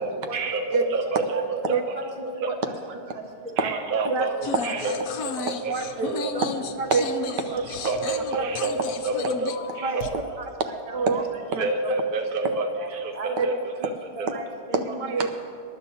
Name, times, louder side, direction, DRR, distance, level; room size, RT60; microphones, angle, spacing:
voice 1, 0.0-2.0 2.2-2.5 3.6-4.4 4.6-4.9 5.2-5.7 6.0-6.3 7.8-10.0 11.6-13.9 14.2-14.3, right 3 dB, 45° right, 4 dB, 0.7 m, -28 dB
voice 2, 1.1-1.4 1.7-1.8 2.1-2.8 3.1-3.2 3.6-3.8 4.3-5.5 6.3-6.8 7.5-8.1 8.4-8.5 9.1-9.2 9.8-11.9 12.5-12.9 13.1-13.9 14.2-15.0, right 2 dB, 25° right, 2 dB, 1.2 m, -37 dB
sound 1, 4.4-10.1, left 6 dB, 65° left, 0.9 m, -34 dB
voice 3, 5.7-6.2 6.8-7.6 9.8-10.0 10.9-11.2 11.5-11.6 13.4-13.5 14.3-14.4 14.7-15.4, right 4 dB, 70° right, 6 dB, 1.4 m, -26 dB
26.5 x 11.5 x 2.8 m, 2.4 s
omnidirectional pair, 2.0 m